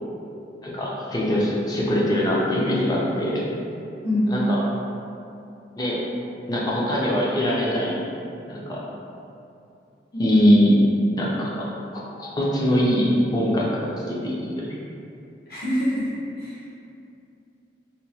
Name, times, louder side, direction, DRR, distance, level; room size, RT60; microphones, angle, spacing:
voice 1, 0.6-3.4 4.3-4.6 5.8-6.0 6.5-8.0 8.5-8.8 10.1-10.8 11.2-11.7 12.2-14.8, equal, 20° left, -5 dB, 0.4 m, -22 dB
voice 2, 4.0-4.4 15.5-16.6, left 1 dB, 60° left, -9 dB, 1.0 m, -25 dB
2.9 x 2.2 x 2.8 m, 2.6 s
head